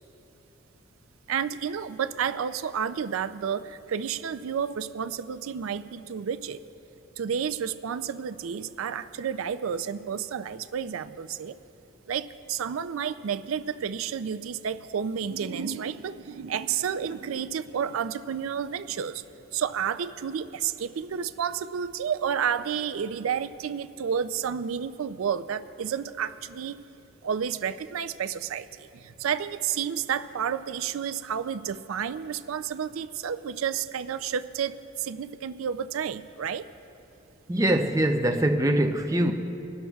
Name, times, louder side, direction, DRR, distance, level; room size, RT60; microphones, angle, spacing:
voice 1, 1.3-6.6 7.2-11.6 12.1-19.2 19.5-26.8 27.2-36.7, right 7 dB, 85° right, 0.4 m, -31 dB
voice 2, 37.5-39.3, right 1 dB, 15° right, 0.5 m, -23 dB
23.0 x 12.0 x 2.3 m
head